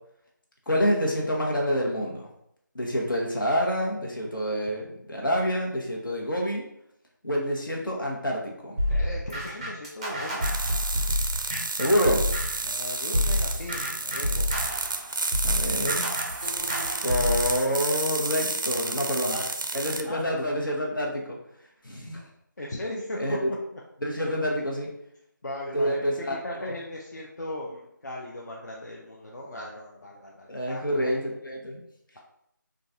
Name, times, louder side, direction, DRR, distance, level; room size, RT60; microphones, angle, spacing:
voice 1, 0.7-2.3 2.7-6.7 7.2-8.8 11.8-12.2 15.4-16.1 17.0-19.4 19.7-21.4 21.8-22.2 23.2-23.5 24.0-24.9 25.7-26.7 30.5-31.8, equal, 80° left, -2 dB, 1.0 m, -27 dB
sound 1, 8.8-12.7 13.1-17.5, left 1 dB, 20° right, 0.4 m, -28 dB
voice 2, 8.9-10.4 12.6-14.5 18.8-19.6 20.0-20.3 22.6-23.4 23.7-23.8 25.4-30.8, left 1 dB, 55° left, -3 dB, 0.5 m, -37 dB
sound 2, 10.4-20.0, right 3 dB, 80° right, 0.4 m, -31 dB
3.9 x 2.3 x 2.6 m, 0.75 s
figure-of-eight pair, 165°, 11 cm